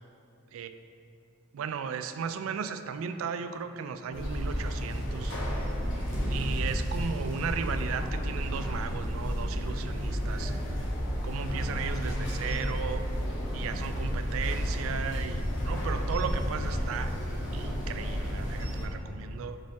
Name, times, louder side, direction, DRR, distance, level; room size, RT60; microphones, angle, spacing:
voice 1, 1.5-5.4 6.3-10.6 11.2-13.1 13.5-17.2 17.5-19.6, right 6 dB, 85° right, 10 dB, 0.3 m, -36 dB
sound 1, 4.1-18.9, equal, 65° left, 1.0 m, -31 dB
5.5 x 5.1 x 3.5 m, 2.6 s
head